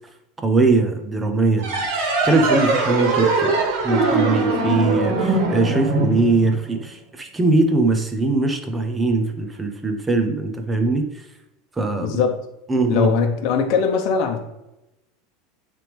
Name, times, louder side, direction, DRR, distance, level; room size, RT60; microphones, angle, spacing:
voice 1, 0.4-11.1 11.8-12.2 12.7-13.1, right 3 dB, 10° right, 5 dB, 0.8 m, -21 dB
sound 1, 1.6-6.8, right 3 dB, 70° right, 1.8 m, -21 dB
voice 2, 12.0-12.3 12.9-14.4, left 6 dB, 50° left, 3 dB, 1.0 m, -20 dB
8.9 x 3.4 x 3.5 m, 0.92 s
supercardioid pair, 150°, 0 cm